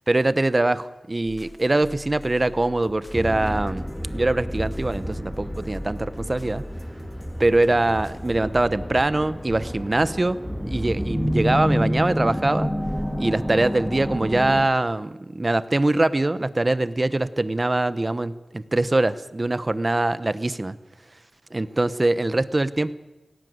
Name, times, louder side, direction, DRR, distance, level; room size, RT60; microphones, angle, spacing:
voice 1, 0.1-3.9 4.1-6.6 7.4-12.7 13.2-20.8 21.5-22.9, right 2 dB, 35° right, 16 dB, 0.9 m, -23 dB
sound 1, 1.2-8.4, left 1 dB, 30° left, 2.4 m, -41 dB
sound 2, 3.1-14.6, equal, 10° left, 2.4 m, -29 dB
17.5 x 17.5 x 9.5 m, 1.1 s
wide cardioid pair, 65°, 0 cm